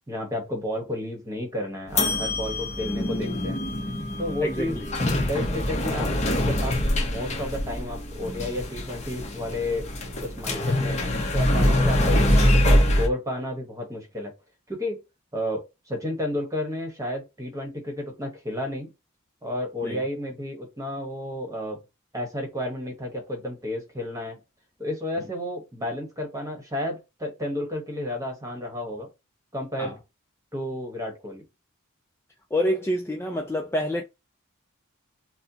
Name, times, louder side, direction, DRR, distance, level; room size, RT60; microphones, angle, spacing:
voice 1, 0.1-3.6 4.2-4.8 5.3-6.8 7.0-9.9 10.2-14.3 14.7-15.0 15.3-18.9 19.4-21.8 22.1-24.4 24.8-29.1 29.5-29.9 30.5-31.4, left 1 dB, 15° right, 1.1 m, -32 dB
sound 1, 1.9-13.1, left 1 dB, 30° left, 0.7 m, -24 dB
voice 2, 4.4-4.9 19.8-20.0 29.8-29.9 32.5-34.0, equal, 10° left, 0.3 m, -27 dB
4.3 x 2.1 x 2.7 m
head